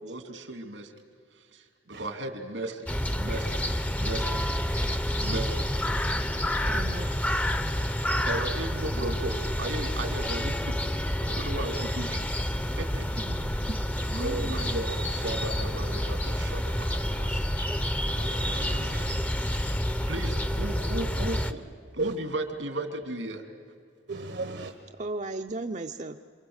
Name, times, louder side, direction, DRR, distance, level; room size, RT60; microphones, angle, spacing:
voice 1, 0.0-0.9 1.5-2.9 3.2-3.6 4.0-4.3 5.2-5.6 8.2-13.1 13.5-13.6 14.1-17.5 20.1-21.7 21.9-23.4, right 2 dB, 90° right, 2.8 m, -36 dB
sound 1, 2.9-21.5, equal, 10° left, 0.7 m, -29 dB
voice 2, 6.6-7.2 13.2-13.8 14.1-14.8 15.2-15.3 25.0-26.2, right 2 dB, 40° right, 0.6 m, -36 dB
voice 3, 18.1-19.2 22.0-22.2 24.1-24.7, right 2 dB, 70° right, 1.2 m, -36 dB
27.5 x 25.0 x 8.1 m
head